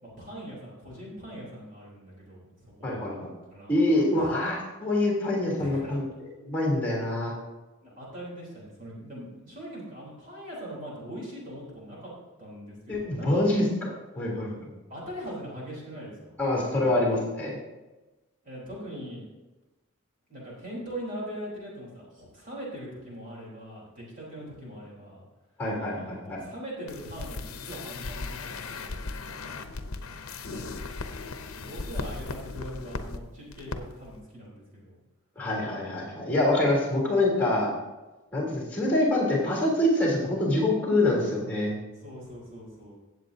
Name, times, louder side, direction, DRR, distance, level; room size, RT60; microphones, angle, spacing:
voice 1, 0.0-3.0 3.5-3.7 4.2-4.3 5.6-6.0 7.8-12.0 12.4-13.5 14.9-16.3 16.7-16.9 18.4-19.2 20.3-25.2 25.9-29.7 30.4-30.7 31.5-35.0 42.0-43.0, equal, 40° right, -5 dB, 3.7 m, -41 dB
voice 2, 2.8-3.3 3.7-6.0 6.4-7.3 12.9-13.9 14.1-14.7 16.4-17.6 25.6-26.4 35.3-37.7 38.3-41.8, left 1 dB, 10° left, -3 dB, 3.3 m, -25 dB
sound 1, 26.9-33.2 33.5-33.8 34.0-34.2, left 3 dB, 80° left, 0.7 m, -37 dB
17.0 x 8.0 x 2.8 m, 1.1 s
head